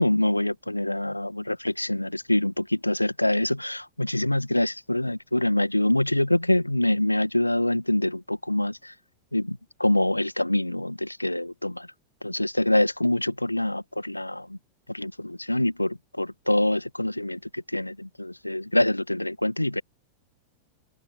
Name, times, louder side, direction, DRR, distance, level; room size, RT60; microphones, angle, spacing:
voice 1, 0.0-8.9 9.3-11.9 12.2-14.6 14.9-19.8, left 1 dB, 85° left, 1.8 m, -25 dB
open air
figure-of-eight pair, 90°, 0 cm